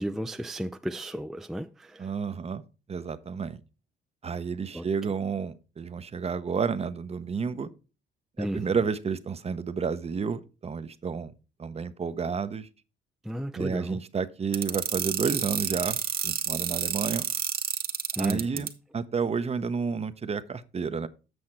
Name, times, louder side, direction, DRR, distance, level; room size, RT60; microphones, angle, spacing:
voice 1, 0.0-2.1 4.7-4.9 8.4-8.7 13.2-14.0 18.2-18.7, right 1 dB, ahead, 0.4 m, -33 dB
voice 2, 2.0-2.6 2.9-3.6 4.2-7.7 8.4-11.3 11.6-12.7 13.6-17.3 18.1-21.1, right 5 dB, 30° right, 0.7 m, -31 dB
sound 1, 14.5-18.7, right 7 dB, 50° right, 1.0 m, -29 dB
7.9 x 6.2 x 4.3 m
cardioid pair, 90°, 20 cm